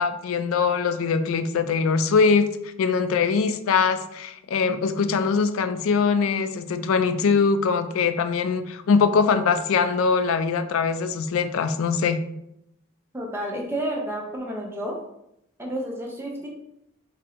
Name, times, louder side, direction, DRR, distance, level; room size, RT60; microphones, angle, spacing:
voice 1, 0.0-12.2, left 5 dB, 70° left, 10 dB, 0.3 m, -22 dB
voice 2, 13.1-15.0 15.6-16.5, right 1 dB, 10° right, -1 dB, 0.5 m, -30 dB
2.8 x 2.6 x 4.1 m, 0.80 s
head